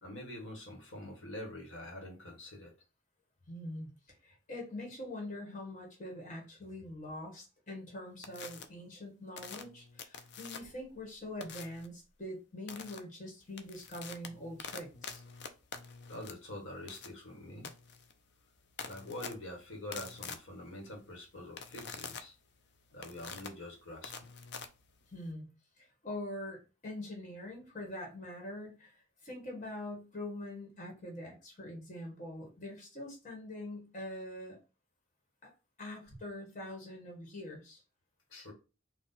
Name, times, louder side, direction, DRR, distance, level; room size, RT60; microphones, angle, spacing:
voice 1, 0.0-2.7 16.1-17.7 18.8-22.3 22.9-24.3 38.3-38.5, left 1 dB, 80° left, 1 dB, 1.3 m, -45 dB
voice 2, 3.5-3.9 4.2-15.2 25.1-25.5 25.8-34.6 35.4-35.5 35.8-37.8, left 1 dB, 40° left, 0 dB, 1.4 m, -44 dB
sound 1, 8.2-8.6 9.4-10.8 11.4-11.9 12.7-13.0 13.4-25.3, left 6 dB, 60° left, 0.5 m, -46 dB
4.2 x 2.4 x 4.0 m, 0.31 s
head